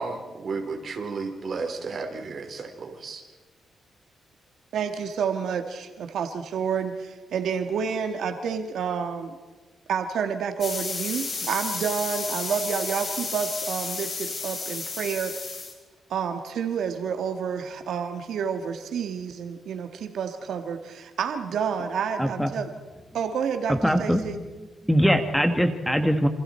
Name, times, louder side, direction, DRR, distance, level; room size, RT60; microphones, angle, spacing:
voice 1, 0.0-3.2, right 4 dB, 50° right, 4 dB, 3.7 m, -33 dB
voice 2, 4.7-9.4 9.9-15.6 16.1-22.7 23.1-24.4, right 6 dB, 80° right, 6 dB, 1.7 m, -29 dB
sound 1, 10.6-15.7, left 4 dB, 40° left, 4.8 m, -32 dB
voice 3, 22.2-22.5 23.7-24.3 24.8-26.3, equal, ahead, 7 dB, 1.6 m, -22 dB
28.0 x 27.0 x 4.4 m, 1.3 s
cardioid pair, 120°, 0 cm